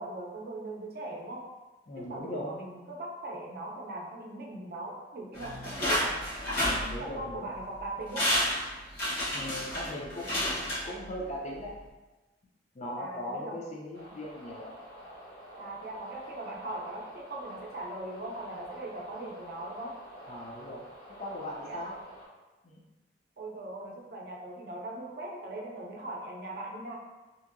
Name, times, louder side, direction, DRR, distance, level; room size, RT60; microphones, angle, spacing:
voice 1, 0.0-1.5 1.9-6.2 6.9-8.3 13.0-13.6 15.6-19.9 21.6-21.8 23.4-27.0, right 2 dB, 55° right, -2 dB, 0.5 m, -40 dB
voice 2, 1.9-2.5 6.6-7.5 9.3-11.7 12.7-14.7 20.3-20.8 21.2-22.0 22.6-22.8, left 1 dB, 40° left, -3 dB, 0.4 m, -39 dB
sound 1, 5.3-7.4 7.8-7.9 8.1-11.3 11.7-11.8, equal, 60° left, 1.1 m, -30 dB
sound 2, 13.9-22.3, equal, 80° left, 1.3 m, -48 dB
2.8 x 2.6 x 2.5 m, 1.1 s
head